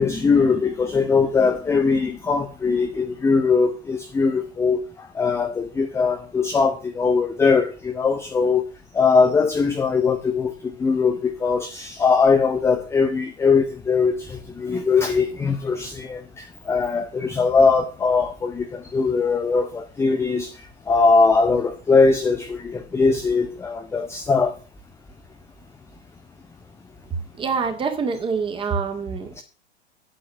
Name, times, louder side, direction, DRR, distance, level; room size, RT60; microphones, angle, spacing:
voice 1, 0.0-4.8 5.1-8.6 8.9-20.5 20.9-24.5 29.4-29.5, left 4 dB, 10° left, 0.7 m, -20 dB
voice 2, 27.4-29.3, right 5 dB, 15° right, 2.1 m, -25 dB
8.8 x 8.6 x 6.0 m
figure-of-eight pair, 100°, 32 cm